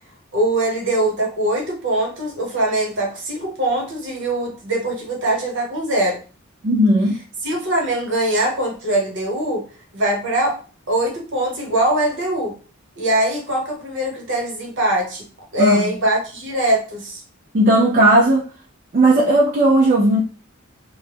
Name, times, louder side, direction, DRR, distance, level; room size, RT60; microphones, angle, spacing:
voice 1, 0.3-6.2 7.4-9.6 9.9-10.6 10.9-12.6 13.0-15.2 15.5-17.2, right 1 dB, 60° right, 1.0 m, -22 dB
voice 2, 6.6-7.2 15.6-15.9 17.5-18.5 18.9-20.2, right 1 dB, 40° right, 0.4 m, -15 dB
2.1 x 2.0 x 3.3 m
head